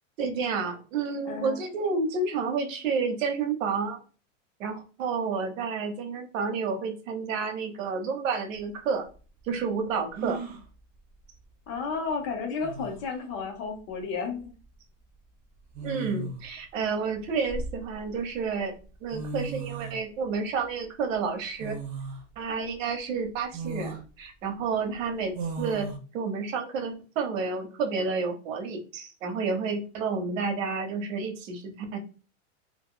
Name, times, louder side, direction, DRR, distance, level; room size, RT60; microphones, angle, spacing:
voice 1, 0.2-4.0 4.6-9.0 9.4-10.4 15.8-21.8 22.4-25.9 26.1-32.0, right 5 dB, 85° right, 5 dB, 1.0 m, -30 dB
voice 2, 1.2-1.6 11.7-14.5, left 5 dB, 40° left, 3 dB, 0.8 m, -32 dB
sound 1, 8.6-8.7 10.2-10.6 12.2-12.3 12.6-13.1 14.4-14.6 15.7-16.5 17.1-18.2 18.8-18.9 19.1-20.0 21.6-22.2 22.7-22.8 23.5-24.0 25.3-26.0, right 4 dB, 25° right, 0.4 m, -36 dB
2.6 x 2.3 x 3.6 m, 0.36 s
supercardioid pair, 155°, 38 cm